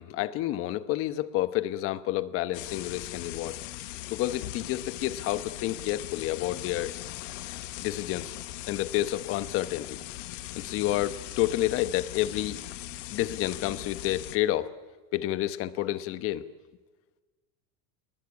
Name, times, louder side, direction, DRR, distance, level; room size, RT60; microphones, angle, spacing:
voice 1, 0.0-3.6 4.1-6.9 7.8-8.3 8.7-10.0 10.5-12.6 13.1-14.7 15.1-16.4, left 14 dB, 35° left, 13 dB, 1.1 m, -29 dB
sound 1, 2.5-14.4, left 16 dB, 90° left, 1.6 m, -40 dB
29.0 x 20.0 x 9.7 m, 1.3 s
cardioid pair, 175°, 37 cm